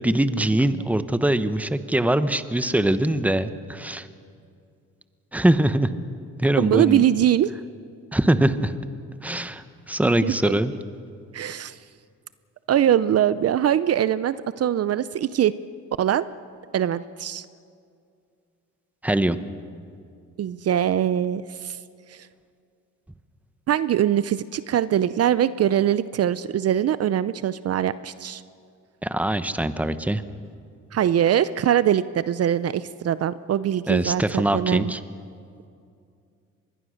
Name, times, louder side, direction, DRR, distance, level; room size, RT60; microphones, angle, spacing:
voice 1, 0.0-4.1 5.3-5.9 6.4-7.0 8.1-8.7 9.2-10.7 19.0-19.4 29.0-30.2 33.9-35.0, right 1 dB, 5° right, 12 dB, 1.0 m, -22 dB
voice 2, 6.6-7.5 10.2-10.3 11.3-11.8 12.7-15.5 16.0-16.3 16.7-17.5 20.4-21.8 22.1-22.3 23.7-28.4 30.9-34.9, right 10 dB, 55° right, 15 dB, 0.6 m, -22 dB
25.5 x 21.0 x 6.5 m, 2.4 s
cardioid pair, 90°, 30 cm